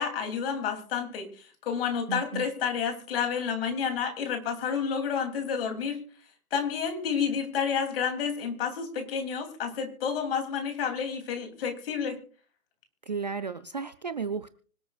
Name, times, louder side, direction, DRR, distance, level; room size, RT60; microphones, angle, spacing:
voice 1, 0.0-6.0 6.5-12.2, left 7 dB, 40° left, 6 dB, 3.1 m, -30 dB
voice 2, 2.1-2.5 13.1-14.5, right 5 dB, 30° right, 11 dB, 0.4 m, -33 dB
25.0 x 8.7 x 2.4 m, 0.43 s
figure-of-eight pair, 140°, 43 cm